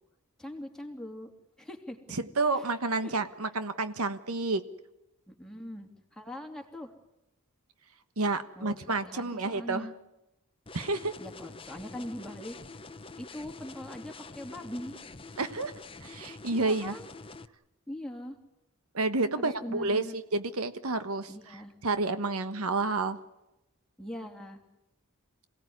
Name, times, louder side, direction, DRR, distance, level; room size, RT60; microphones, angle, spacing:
voice 1, 0.4-1.3 1.6-2.0 3.0-3.1 5.3-6.9 8.6-9.9 11.2-12.6 13.2-15.0 16.5-17.1 17.9-18.4 19.4-20.2 21.3-21.7 24.0-24.6, left 1 dB, 5° left, 1 dB, 3.1 m, -41 dB
voice 2, 2.1-4.6 8.2-9.9 10.7-11.1 15.4-15.7 16.0-17.0 18.9-21.3 21.8-23.2, right 3 dB, 75° right, 10 dB, 1.3 m, -30 dB
sound 1, 10.7-17.5, left 3 dB, 25° left, 0.9 m, -46 dB
27.0 x 18.0 x 9.6 m, 0.93 s
head